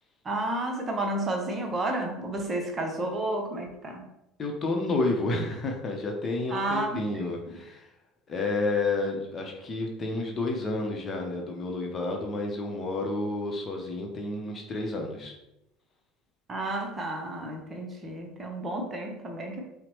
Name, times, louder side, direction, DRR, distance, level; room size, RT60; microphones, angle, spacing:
voice 1, 0.2-4.0 6.5-7.3 16.5-19.6, right 2 dB, 30° right, 2 dB, 0.9 m, -31 dB
voice 2, 4.4-7.9 8.3-15.3, left 2 dB, 30° left, 1 dB, 0.8 m, -30 dB
5.8 x 2.2 x 3.1 m, 0.86 s
figure-of-eight pair, 65°, 0 cm